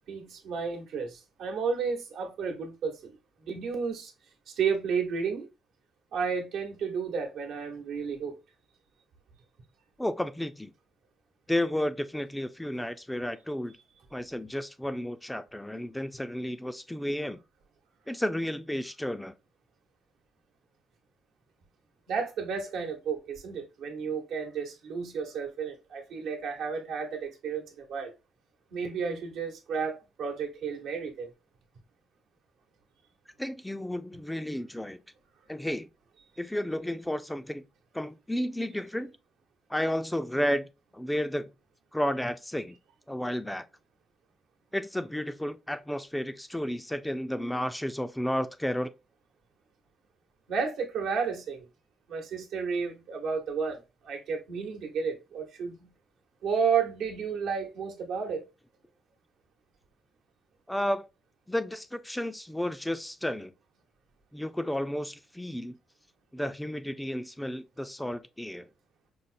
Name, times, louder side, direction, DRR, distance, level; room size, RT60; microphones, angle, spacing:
voice 1, 0.1-3.2 3.4-4.1 4.6-5.5 6.1-8.4 22.1-28.1 28.7-31.3 50.5-51.7 52.1-55.8 56.4-58.4, right 6 dB, 80° right, 1.0 m, -32 dB
voice 2, 10.0-10.7 11.5-13.7 14.1-17.4 18.1-19.3 33.4-35.0 35.5-35.9 36.4-37.6 37.9-39.1 39.7-40.7 40.9-41.5 41.9-42.8 43.1-43.6 44.7-48.9 60.7-61.1 61.5-63.5 64.3-65.7 66.3-68.7, left 1 dB, 5° left, 0.4 m, -32 dB
5.2 x 2.1 x 2.5 m
cardioid pair, 90°, 0 cm